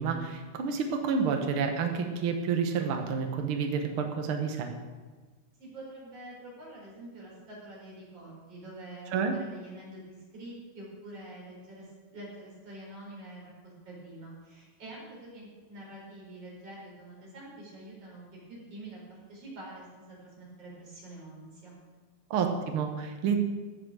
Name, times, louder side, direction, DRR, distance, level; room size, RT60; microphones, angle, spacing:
voice 1, 0.0-4.7 9.1-9.3 22.3-23.4, right 6 dB, 90° right, 4 dB, 1.1 m, -29 dB
voice 2, 5.6-10.0 10.3-21.7, right 1 dB, 40° right, -4 dB, 5.2 m, -46 dB
14.5 x 7.8 x 6.5 m, 1.3 s
omnidirectional pair, 4.4 m